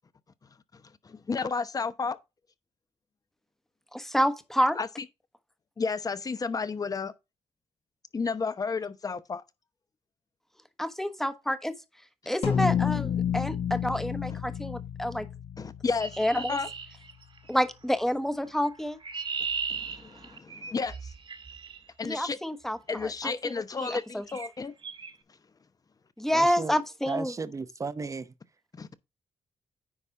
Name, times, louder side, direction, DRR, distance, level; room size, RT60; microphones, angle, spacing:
voice 1, 0.4-2.2 4.8-5.1 5.8-7.1 8.1-9.4 13.9-14.4 15.6-16.7 19.7-21.1 22.0-22.4 22.9-24.7 25.3-25.4 28.7-28.9, left 4 dB, 35° left, 0.9 m, -32 dB
voice 2, 3.9-4.8 10.8-11.7 12.3-15.3 16.2-16.3 17.5-19.0 22.0-22.8 23.0-23.5 23.8-24.2 26.2-27.3, equal, 5° left, 1.1 m, -28 dB
sound 1, 12.4-17.0, left 8 dB, 60° left, 1.8 m, -30 dB
Chirp tweet, 16.0-17.6 18.6-21.8 22.9-23.2 23.8-24.0 24.3-24.5 24.8-25.1, right 5 dB, 50° right, 1.5 m, -37 dB
voice 3, 26.3-26.7 27.1-28.2, right 4 dB, 30° right, 0.8 m, -34 dB
9.8 x 4.1 x 4.6 m
cardioid pair, 85°, 11 cm